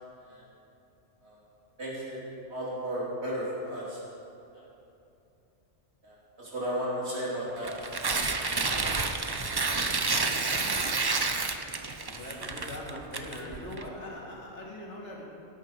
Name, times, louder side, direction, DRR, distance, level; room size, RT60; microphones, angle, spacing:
voice 1, 1.8-2.2 2.5-4.0 4.5-4.7 6.0-7.8, equal, 65° right, -7 dB, 3.5 m, -34 dB
Tearing, 7.6-13.8, right 3 dB, 30° right, 0.5 m, -29 dB
voice 2, 12.0-15.2, left 1 dB, 75° left, -3 dB, 2.5 m, -41 dB
16.5 x 9.2 x 4.6 m, 2.7 s
omnidirectional pair, 1.2 m